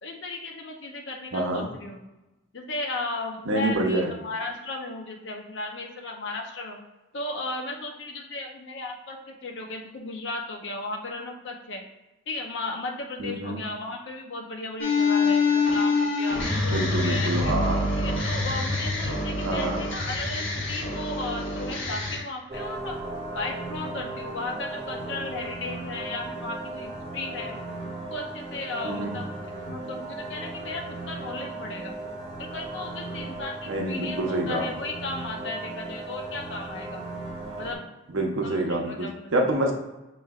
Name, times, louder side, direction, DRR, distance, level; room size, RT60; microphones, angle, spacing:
voice 1, 0.0-2.0 2.5-6.8 7.1-11.8 12.3-17.5 18.0-23.0 23.3-27.6 28.1-29.3 29.6-31.9 32.4-37.0 37.6-37.8 38.4-39.4, left 2 dB, 65° left, 1 dB, 0.6 m, -35 dB
voice 2, 1.3-1.7 3.5-4.1 13.2-13.6 16.7-17.9 19.5-19.8 28.8-29.1 33.7-34.7 38.1-39.7, right 1 dB, 80° right, 1 dB, 0.8 m, -27 dB
sound 1, 14.8-22.2, left 3 dB, 80° left, 1.4 m, -26 dB
sound 2, 22.5-37.7, right 2 dB, 35° right, 1.1 m, -37 dB
6.0 x 3.1 x 2.3 m, 1.0 s
head